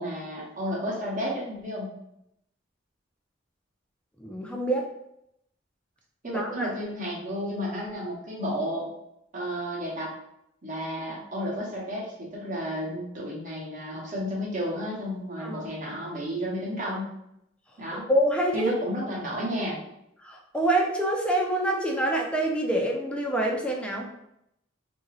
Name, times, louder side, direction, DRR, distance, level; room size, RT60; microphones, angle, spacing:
voice 1, 0.0-1.9 6.2-8.9 9.3-10.1 10.6-17.1 17.8-18.1 18.5-19.8, equal, 45° right, -4 dB, 0.9 m, -32 dB
voice 2, 4.2-4.9 6.2-6.7 15.4-15.7 17.9-18.7 20.2-24.1, right 1 dB, 5° left, 0 dB, 0.4 m, -26 dB
2.8 x 2.6 x 2.9 m, 0.80 s
head